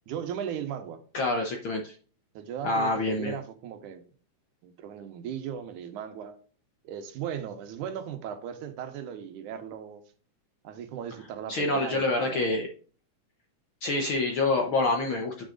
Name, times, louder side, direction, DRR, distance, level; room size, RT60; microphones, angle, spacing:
voice 1, 0.1-1.0 2.3-4.0 4.6-6.4 6.8-10.0 10.6-12.5, right 8 dB, 90° right, 8 dB, 2.4 m, -37 dB
voice 2, 1.1-1.9 2.6-3.3 11.5-12.7 13.8-15.4, left 2 dB, 65° left, 3 dB, 1.3 m, -27 dB
9.4 x 6.2 x 2.5 m, 0.41 s
omnidirectional pair, 3.5 m